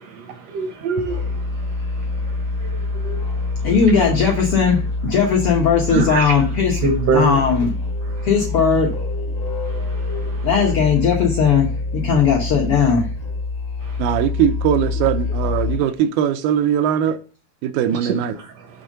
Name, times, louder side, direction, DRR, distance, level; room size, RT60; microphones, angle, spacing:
voice 1, 0.1-1.3 2.6-3.2 5.9-6.3 6.8-7.4 18.0-18.1, right 4 dB, 70° right, 1.5 m, -23 dB
Musical instrument, 1.0-16.0, left 3 dB, 55° left, 0.6 m, -26 dB
voice 2, 3.6-6.8 7.1-7.8 8.2-9.0 10.4-13.1 14.8-14.9, left 6 dB, 80° left, 1.2 m, -18 dB
voice 3, 14.0-17.2 17.6-18.3, right 9 dB, 85° right, 2.6 m, -20 dB
6.9 x 3.7 x 6.4 m
omnidirectional pair, 4.2 m